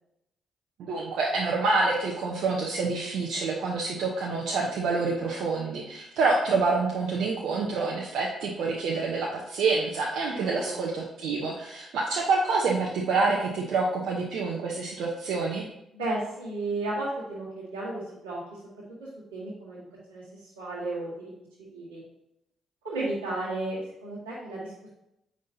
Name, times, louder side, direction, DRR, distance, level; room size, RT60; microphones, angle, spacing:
voice 1, 0.8-15.6, right 3 dB, 70° right, -2 dB, 0.8 m, -27 dB
voice 2, 10.3-10.8 15.9-21.3 21.6-22.0 22.8-24.9, right 2 dB, 90° right, -10 dB, 1.5 m, -34 dB
7.5 x 5.5 x 2.7 m, 0.85 s
hypercardioid pair, 45°, 0 cm